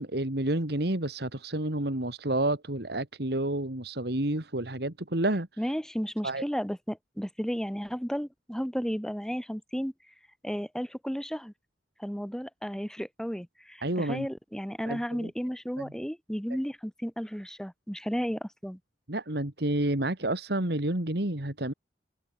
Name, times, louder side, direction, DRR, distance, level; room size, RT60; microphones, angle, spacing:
voice 1, 0.0-5.5 6.2-6.4 13.8-14.3 14.9-15.3 15.8-15.9 19.1-21.7, right 1 dB, 65° right, 2.6 m, -30 dB
voice 2, 5.6-9.9 10.4-11.5 12.0-18.8, equal, 5° left, 2.6 m, -33 dB
open air
head